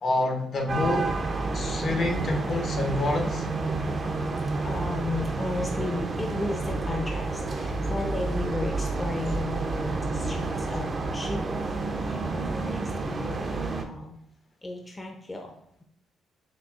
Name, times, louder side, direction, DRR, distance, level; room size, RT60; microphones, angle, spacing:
voice 1, 0.0-1.1 1.5-3.5, left 2 dB, 50° left, 3 dB, 0.8 m, -27 dB
sound 1, 0.7-13.8, right 3 dB, 40° right, 0.5 m, -30 dB
voice 2, 3.9-14.2 14.6-15.5, left 2 dB, 20° left, 1 dB, 0.5 m, -35 dB
6.1 x 2.3 x 2.4 m, 0.70 s
cardioid pair, 90°, 0 cm